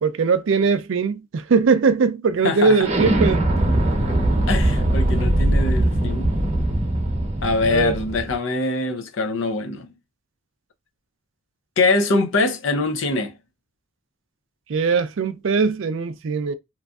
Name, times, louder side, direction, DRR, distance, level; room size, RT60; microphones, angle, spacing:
voice 1, 0.0-3.4 7.7-8.0 14.7-16.5, right 5 dB, 65° right, 0.4 m, -20 dB
voice 2, 2.4-2.8 4.5-6.3 7.4-9.9 11.8-13.3, left 3 dB, 60° left, 0.5 m, -23 dB
Explosion, 2.8-8.3, right 1 dB, 30° right, 0.8 m, -21 dB
3.0 x 2.5 x 2.3 m
head